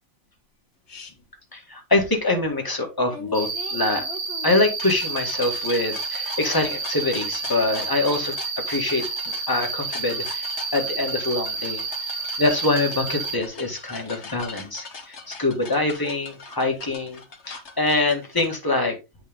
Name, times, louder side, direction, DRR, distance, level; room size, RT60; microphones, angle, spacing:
sound 1, 0.9-1.1 3.1-18.6, left 4 dB, 40° left, 1.5 m, -40 dB
voice 1, 1.5-4.1 4.4-9.0 9.5-11.8 12.4-17.2 17.5-19.0, left 2 dB, 10° left, 2 dB, 1.7 m, -24 dB
Cricket, 3.3-13.3, right 4 dB, 35° right, 2.3 m, -30 dB
8.4 x 5.1 x 3.7 m, 0.25 s
omnidirectional pair, 2.2 m